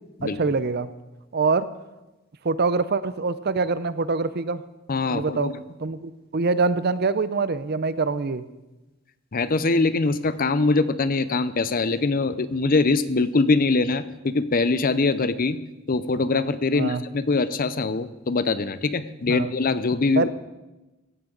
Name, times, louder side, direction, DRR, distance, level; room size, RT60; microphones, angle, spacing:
voice 1, 0.2-0.9 1.3-1.7 2.4-4.6 5.1-5.5 5.8-8.4 16.7-17.0 19.3-19.5 20.1-20.3, right 4 dB, 50° right, 14 dB, 0.6 m, -24 dB
voice 2, 4.9-5.6 9.3-15.6 15.9-20.3, left 3 dB, 45° left, 14 dB, 0.6 m, -23 dB
16.5 x 15.5 x 3.9 m, 1.0 s
head